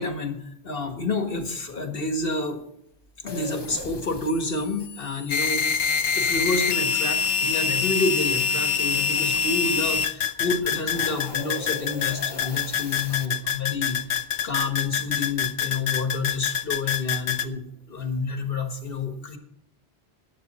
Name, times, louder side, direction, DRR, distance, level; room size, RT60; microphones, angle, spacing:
voice 1, 0.0-2.6 3.2-14.0 14.4-19.4, left 3 dB, 55° left, 6 dB, 1.8 m, -29 dB
sound 1, 3.3-10.1 10.5-13.3, left 3 dB, 25° left, 0.7 m, -41 dB
sound 2, 5.3-17.4, left 6 dB, 80° left, 1.1 m, -25 dB
15.0 x 10.0 x 4.2 m, 0.72 s
omnidirectional pair, 1.1 m